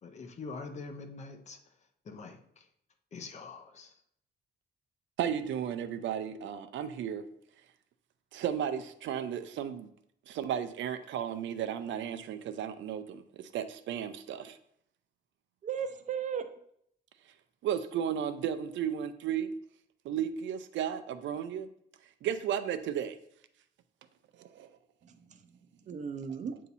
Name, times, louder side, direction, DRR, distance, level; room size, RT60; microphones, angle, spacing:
voice 1, 0.0-1.6 2.0-2.7 3.1-4.0, left 4 dB, 40° left, 6 dB, 0.6 m, -44 dB
voice 2, 5.2-7.2 8.3-9.9 10.3-14.6 17.6-19.5 20.0-21.7 22.2-23.2 24.4-24.7, right 9 dB, 90° right, 10 dB, 0.5 m, -34 dB
voice 3, 15.6-16.5 25.0-25.6 25.8-26.6, right 7 dB, 40° right, 9 dB, 0.5 m, -36 dB
8.2 x 2.8 x 4.0 m, 0.70 s
wide cardioid pair, 170°, 19 cm